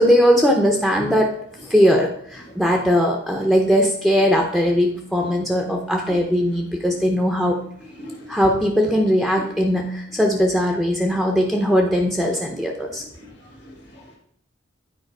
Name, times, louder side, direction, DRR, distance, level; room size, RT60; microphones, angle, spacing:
voice 1, 0.0-1.3 1.7-7.6 8.3-13.0, equal, ahead, 2 dB, 0.6 m, -19 dB
voice 2, 8.0-8.4 13.0-13.3 13.6-14.2, left 1 dB, 60° left, -4 dB, 1.8 m, -41 dB
9.0 x 4.4 x 4.6 m, 0.64 s
head